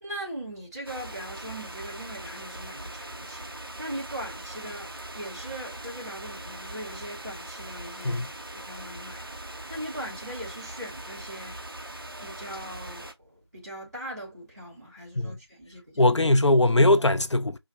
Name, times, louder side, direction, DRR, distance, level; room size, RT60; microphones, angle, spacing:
voice 1, 0.0-8.2 8.5-11.6 12.2-16.1, right 1 dB, 35° right, 2.7 m, -40 dB
sound 1, 0.8-13.1, right 1 dB, 55° right, 0.9 m, -41 dB
voice 2, 16.0-17.6, left 2 dB, 85° left, 0.7 m, -20 dB
4.9 x 2.1 x 4.3 m
figure-of-eight pair, 175°, 15 cm